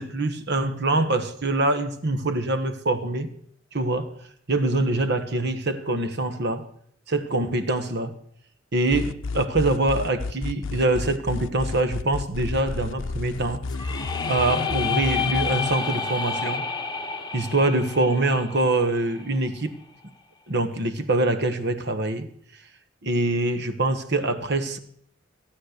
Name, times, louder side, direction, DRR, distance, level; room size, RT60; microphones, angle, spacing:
voice 1, 0.0-3.3 3.7-6.7 7.1-8.1 8.7-13.6 14.2-16.7 17.3-19.8 20.5-22.3 23.0-24.8, right 2 dB, 60° right, 1.3 m, -24 dB
sound 1, 8.9-15.7, left 3 dB, 75° left, 0.6 m, -31 dB
sound 2, 13.7-19.6, left 6 dB, 20° left, 1.0 m, -30 dB
16.0 x 8.8 x 6.6 m
head